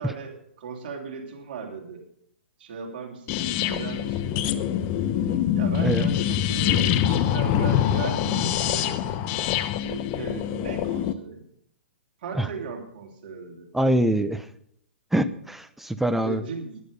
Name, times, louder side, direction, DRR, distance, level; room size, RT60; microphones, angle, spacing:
voice 1, 0.0-2.0 2.6-4.6 5.5-8.9 9.8-11.4 12.2-13.7 16.2-16.8, right 5 dB, 50° right, 1 dB, 3.2 m, -37 dB
sound 1, 3.3-11.1, left 10 dB, 35° left, 0.9 m, -24 dB
voice 2, 13.7-14.5 15.1-16.4, right 1 dB, 5° right, 12 dB, 0.7 m, -24 dB
14.5 x 10.5 x 5.5 m, 0.71 s
figure-of-eight pair, 120°, 6 cm